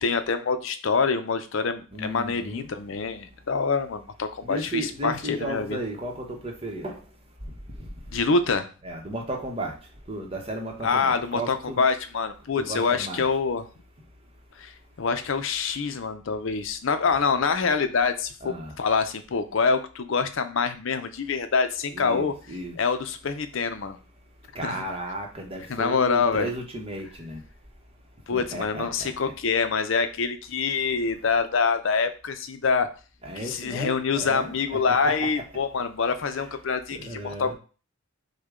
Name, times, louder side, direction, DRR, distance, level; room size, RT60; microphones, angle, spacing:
voice 1, 0.0-5.8 8.1-8.7 10.8-13.7 14.6-14.7 15.0-24.0 24.6-24.8 25.6-26.5 28.3-32.9 33.4-37.5, left 5 dB, 65° left, 9 dB, 0.5 m, -26 dB
voice 2, 1.9-2.7 4.4-7.0 8.8-9.8 10.1-11.8 12.6-13.2 18.4-18.7 21.9-22.8 24.5-27.4 28.3-29.1 33.2-34.5 35.0-35.1 36.9-37.5, right 1 dB, 25° right, 2 dB, 0.9 m, -34 dB
6.4 x 2.2 x 3.6 m, 0.36 s
head